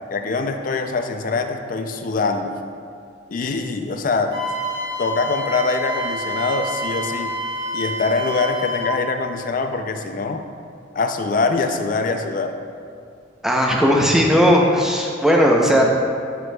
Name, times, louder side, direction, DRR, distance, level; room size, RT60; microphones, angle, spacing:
voice 1, 0.1-2.6 3.3-4.4 5.0-7.3 7.7-10.4 10.9-12.5, left 4 dB, 45° left, 7 dB, 0.4 m, -23 dB
Wind instrument woodwind instrument, 4.3-9.0, equal, 20° right, 1.1 m, -28 dB
voice 2, 13.4-15.8, equal, 5° right, -1 dB, 0.6 m, -16 dB
8.1 x 7.6 x 2.3 m, 2.3 s
head